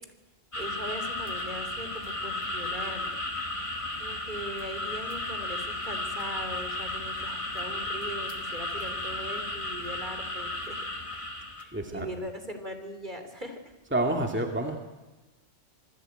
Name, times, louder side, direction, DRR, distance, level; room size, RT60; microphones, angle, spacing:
sound 1, 0.5-11.6, left 1 dB, 25° left, 2.7 m, -34 dB
voice 1, 0.6-3.1 4.0-10.9 11.6-13.6, equal, 40° right, 7 dB, 3.7 m, -40 dB
voice 2, 11.7-12.1 13.8-14.8, right 1 dB, 10° right, 3 dB, 2.4 m, -28 dB
27.5 x 20.0 x 9.1 m, 1.1 s
omnidirectional pair, 1.2 m